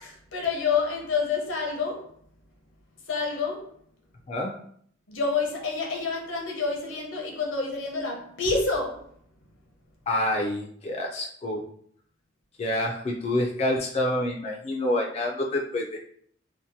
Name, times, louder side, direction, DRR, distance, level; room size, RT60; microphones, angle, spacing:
voice 1, 0.0-2.1 3.1-3.7 5.1-9.1, left 4 dB, 80° left, 0.7 m, -28 dB
voice 2, 10.1-11.6 12.6-16.0, left 1 dB, 35° left, 0.3 m, -27 dB
2.7 x 2.1 x 2.6 m
head